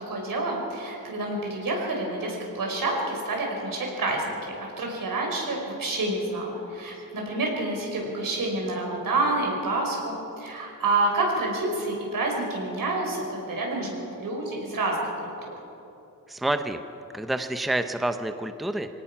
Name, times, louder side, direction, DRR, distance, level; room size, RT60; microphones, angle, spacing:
voice 1, 0.0-15.3, right 2 dB, 80° right, 0 dB, 5.4 m, -28 dB
voice 2, 16.3-16.8 17.1-18.9, right 1 dB, ahead, 8 dB, 0.7 m, -28 dB
25.0 x 17.5 x 5.9 m, 3.0 s
wide cardioid pair, 140°, 33 cm